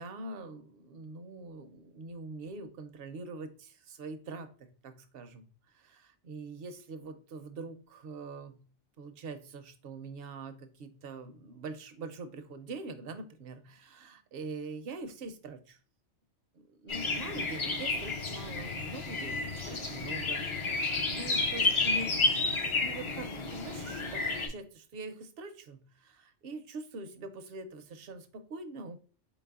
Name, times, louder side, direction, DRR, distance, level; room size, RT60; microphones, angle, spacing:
voice 1, 0.0-5.4 5.7-8.6 9.0-15.8 16.6-22.1 22.8-29.0, right 3 dB, 65° right, 9 dB, 0.7 m, -44 dB
sound 1, 16.9-24.5, left 3 dB, 40° left, 0.4 m, -31 dB
4.1 x 4.0 x 2.3 m, 0.39 s
omnidirectional pair, 1.2 m